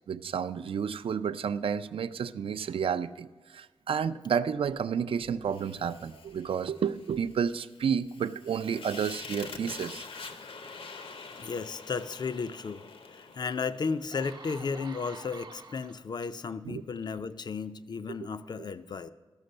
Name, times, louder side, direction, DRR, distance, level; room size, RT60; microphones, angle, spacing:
voice 1, 0.1-10.0 16.7-16.8 18.1-18.2, right 7 dB, 70° right, 13 dB, 0.4 m, -31 dB
Fire, 5.5-14.7, left 4 dB, 70° left, 0.8 m, -46 dB
voice 2, 11.3-12.8 13.1-19.1, left 5 dB, 50° left, 12 dB, 0.4 m, -34 dB
sound 1, 13.3-13.4 13.9-16.3 17.0-17.2, right 3 dB, 50° right, 0.9 m, -48 dB
13.0 x 6.0 x 6.5 m, 1.3 s
wide cardioid pair, 170°, 10 cm